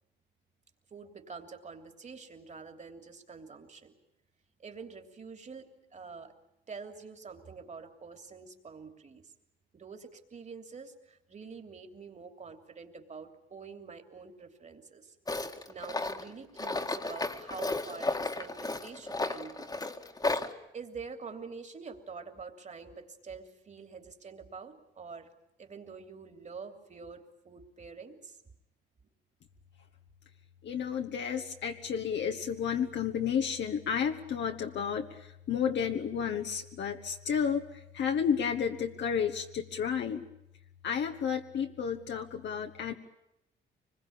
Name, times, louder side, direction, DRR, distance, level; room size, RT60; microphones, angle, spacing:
voice 1, 0.9-3.9 4.6-6.3 6.7-9.2 9.7-15.1 15.7-19.7 20.7-25.3 25.6-28.4, right 5 dB, 35° right, 6 dB, 3.1 m, -46 dB
Tools, 15.3-20.5, left 2 dB, 20° left, 1.8 m, -33 dB
voice 2, 30.6-40.2 40.8-42.9, left 7 dB, 65° left, 4 dB, 1.5 m, -32 dB
24.5 x 21.5 x 8.8 m, 0.87 s
cardioid pair, 90°, 20 cm